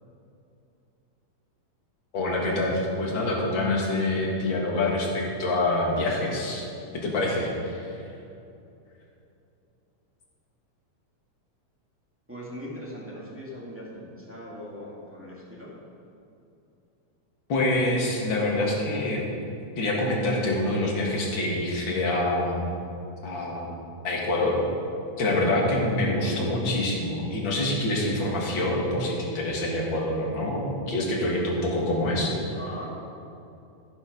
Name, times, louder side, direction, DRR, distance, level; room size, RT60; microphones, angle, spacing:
voice 1, 2.1-6.7 6.9-7.9 17.5-19.3 19.8-22.7 23.2-23.8 24.0-24.6 25.2-32.3, left 1 dB, 40° left, -3 dB, 2.1 m, -26 dB
voice 2, 12.3-15.7 32.2-32.9, left 1 dB, 5° right, -6 dB, 1.2 m, -40 dB
14.5 x 7.2 x 5.3 m, 2.7 s
omnidirectional pair, 3.9 m